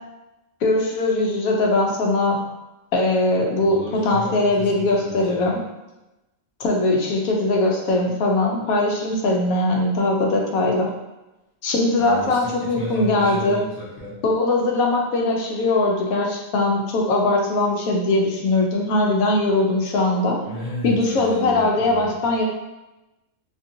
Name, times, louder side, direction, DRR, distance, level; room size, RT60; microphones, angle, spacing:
voice 1, 0.6-2.4 2.9-5.6 6.6-10.9 11.6-13.6 14.2-20.4 20.8-22.4, left 2 dB, 85° left, 0 dB, 1.1 m, -20 dB
voice 2, 3.6-5.4 12.0-14.2 20.4-22.2, left 1 dB, 45° left, -7 dB, 0.9 m, -33 dB
2.9 x 2.5 x 2.6 m, 0.99 s
omnidirectional pair, 1.4 m